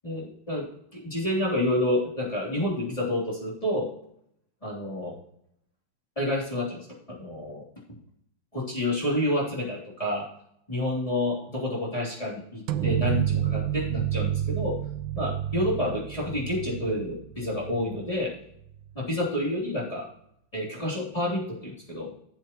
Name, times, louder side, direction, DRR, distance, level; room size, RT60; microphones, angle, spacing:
voice 1, 0.0-3.9 4.6-5.2 6.2-7.6 8.5-10.2 10.7-14.8 15.1-18.3 18.9-20.1 20.5-22.1, left 1 dB, 15° left, -6 dB, 3.2 m, -29 dB
sound 1, 12.7-18.2, right 11 dB, 85° right, 1.5 m, -29 dB
16.0 x 7.9 x 3.0 m, 0.73 s
omnidirectional pair, 2.2 m